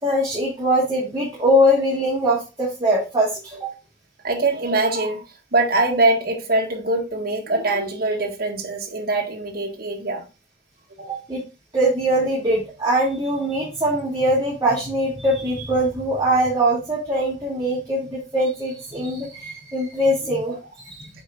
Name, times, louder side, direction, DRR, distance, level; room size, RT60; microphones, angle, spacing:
voice 1, 0.0-3.7 11.1-11.4 11.7-21.1, equal, 20° right, 2.5 m, -22 dB
voice 2, 4.2-5.2 5.5-10.3 11.0-11.1 20.5-20.6, right 2 dB, 55° right, 1.7 m, -23 dB
7.8 x 4.5 x 3.8 m
head